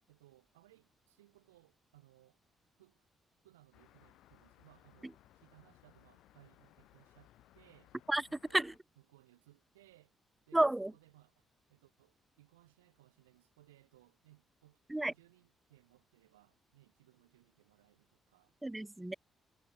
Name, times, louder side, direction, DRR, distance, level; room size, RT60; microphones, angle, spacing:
voice 1, 0.1-2.4 2.8-3.1 3.4-7.9 8.3-10.1 10.5-18.6, right 16 dB, 85° right, 4.1 m, -65 dB
sound 1, 3.7-8.8, left 14 dB, 70° left, 1.8 m, -64 dB
voice 2, 10.5-10.9 14.9-15.1 18.6-19.1, right 1 dB, 15° right, 0.5 m, -30 dB
hypercardioid pair, 45°, 0 cm